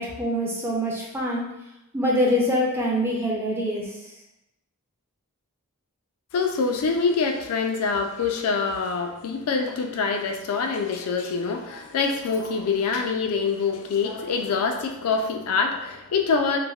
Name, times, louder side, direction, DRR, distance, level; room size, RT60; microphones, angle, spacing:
voice 1, 0.0-1.5 1.9-3.9, equal, 10° right, -3 dB, 0.4 m, -24 dB
voice 2, 6.3-16.6, left 5 dB, 80° left, 5 dB, 0.4 m, -25 dB
3.2 x 2.1 x 2.3 m, 0.90 s
head